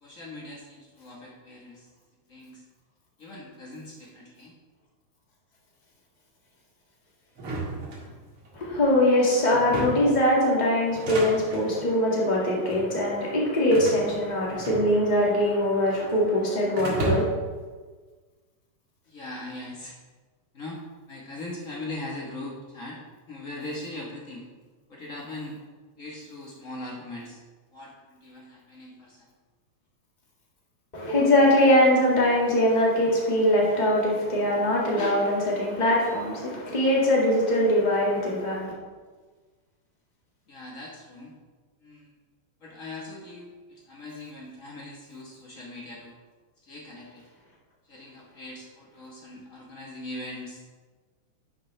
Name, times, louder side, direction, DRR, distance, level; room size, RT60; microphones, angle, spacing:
voice 1, 0.0-1.9 2.3-2.6 3.2-4.5 19.1-19.9 20.5-20.8 21.1-23.0 23.3-24.4 24.9-25.6 26.0-27.4 27.7-29.3 40.5-41.3 41.8-42.1 42.6-46.1 46.6-47.2 47.9-50.6, left 2 dB, 45° left, -3 dB, 1.0 m, -40 dB
sound 1, 7.4-8.5 9.5-10.2 10.9-11.7 12.5-12.9 13.7-15.2 15.5-16.3 16.8-17.5, right 3 dB, 50° right, 2.4 m, -33 dB
voice 2, 8.5-17.2 30.9-38.7, left 1 dB, 20° left, -4 dB, 1.5 m, -22 dB
10.5 x 7.5 x 3.3 m, 1.4 s
omnidirectional pair, 3.4 m